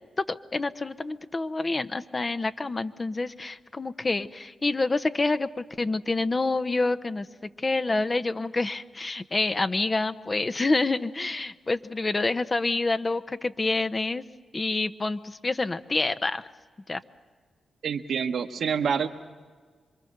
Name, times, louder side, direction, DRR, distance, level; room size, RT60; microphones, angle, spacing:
voice 1, 0.2-7.3 7.6-14.2 14.5-16.4 16.9-17.0, left 3 dB, 35° left, 11 dB, 0.9 m, -27 dB
voice 2, 17.8-19.1, right 7 dB, 75° right, 7 dB, 1.2 m, -27 dB
26.5 x 23.0 x 6.7 m, 1.5 s
supercardioid pair, 40°, 0 cm